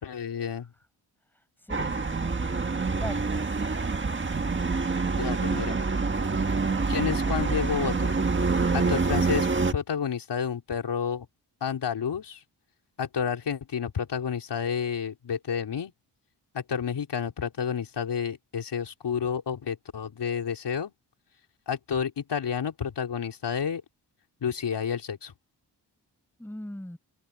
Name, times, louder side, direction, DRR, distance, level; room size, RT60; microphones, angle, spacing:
voice 1, 0.0-0.7 5.1-5.8 6.9-8.1 8.7-11.3 11.6-12.4 13.0-15.9 16.5-20.9 21.7-23.8 24.4-25.3, left 7 dB, 80° left, 4.1 m, -30 dB
voice 2, 1.7-3.4 26.4-27.0, left 1 dB, 5° left, 5.9 m, -40 dB
sound 1, 1.7-9.7, right 4 dB, 30° right, 1.6 m, -26 dB
wide cardioid pair, 140°, 41 cm